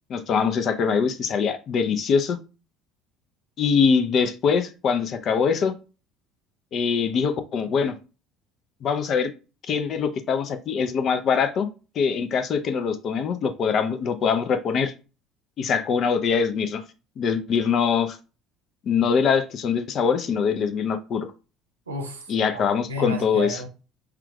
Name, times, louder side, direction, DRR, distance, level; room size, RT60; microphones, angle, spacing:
voice 1, 0.1-2.4 3.6-5.8 6.7-7.9 8.8-9.3 9.7-11.7 12.0-14.9 15.6-16.8 17.2-18.2 18.9-21.3 22.3-23.6, left 6 dB, 50° left, 0.5 m, -23 dB
voice 2, 21.9-23.7, equal, 85° right, 0.7 m, -33 dB
5.8 x 2.4 x 2.3 m
figure-of-eight pair, 60°, 0 cm